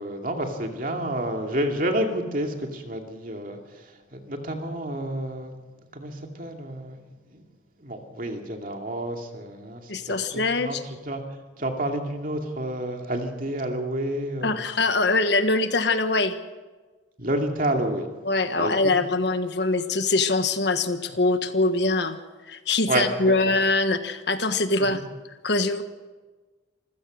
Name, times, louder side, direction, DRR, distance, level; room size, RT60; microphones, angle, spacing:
voice 1, 0.0-5.6 5.9-7.0 7.3-7.4 7.8-10.8 11.1-11.2 11.6-14.6 17.2-18.1 18.6-18.7 22.9-23.1 23.5-23.6 24.8-25.0, right 1 dB, 45° right, 3 dB, 2.5 m, -29 dB
voice 2, 9.9-10.8 14.4-16.4 18.2-25.0 25.4-25.8, left 3 dB, 65° left, 9 dB, 1.4 m, -23 dB
26.0 x 15.5 x 6.5 m, 1.3 s
head